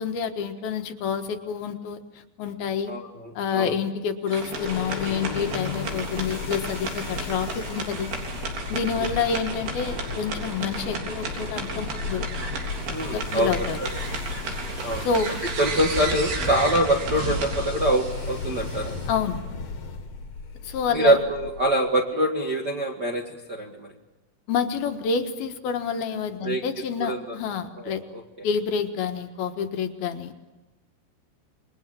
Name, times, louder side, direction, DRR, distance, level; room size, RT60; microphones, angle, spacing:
voice 1, 0.0-2.0 2.4-2.9 3.4-8.1 8.7-12.2 13.1-13.8 15.0-15.3 19.1-19.4 20.6-21.2 24.5-28.0 28.4-30.3, left 6 dB, 70° left, 6 dB, 3.1 m, -28 dB
voice 2, 2.9-3.7 12.9-13.5 13.8-13.9 14.8-15.1 15.6-18.9 20.9-23.9 26.4-26.6 27.0-27.3 27.8-28.2, right 1 dB, 45° right, 0 dB, 1.4 m, -24 dB
sound 1, 4.3-19.1, right 4 dB, 70° right, 5.5 m, -34 dB
sound 2, 4.5-21.9, left 5 dB, 50° left, 2.7 m, -35 dB
28.0 x 22.0 x 7.6 m, 1.1 s
omnidirectional pair, 4.7 m